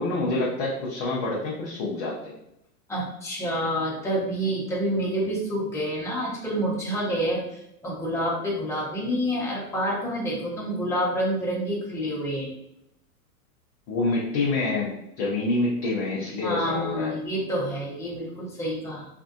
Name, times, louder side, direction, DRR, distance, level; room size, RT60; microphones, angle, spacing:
voice 1, 0.0-2.3 13.9-14.9 15.2-17.2, left 2 dB, 25° left, -4 dB, 0.4 m, -27 dB
voice 2, 2.9-12.5 16.4-19.1, equal, 5° left, -5 dB, 0.8 m, -28 dB
3.4 x 2.5 x 2.4 m, 0.81 s
hypercardioid pair, 130°, 47 cm